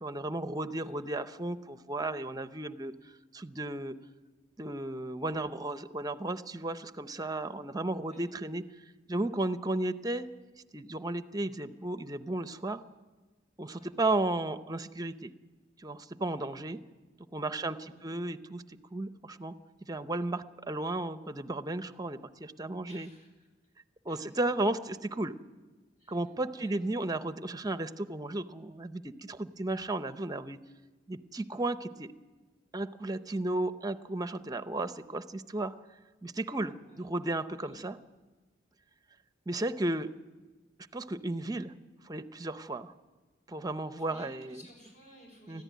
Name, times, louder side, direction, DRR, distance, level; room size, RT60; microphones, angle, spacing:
voice 1, 0.0-2.9 3.3-3.9 4.6-8.6 9.1-10.3 10.7-12.8 13.6-15.3 15.8-16.8 17.3-19.5 19.9-23.1 24.1-25.3 26.1-30.6 31.1-32.1 32.7-35.7 36.2-38.0 39.5-40.1 40.9-41.7 42.0-42.9 43.5-44.6 45.5-45.6, right 2 dB, 20° right, 12 dB, 0.7 m, -34 dB
voice 2, 17.6-18.1 22.9-23.5 24.1-24.2 26.0-26.7 36.8-37.1 37.6-37.8 44.0-45.6, equal, 40° left, 0 dB, 5.9 m, -56 dB
20.5 x 14.5 x 9.4 m, 1.3 s
head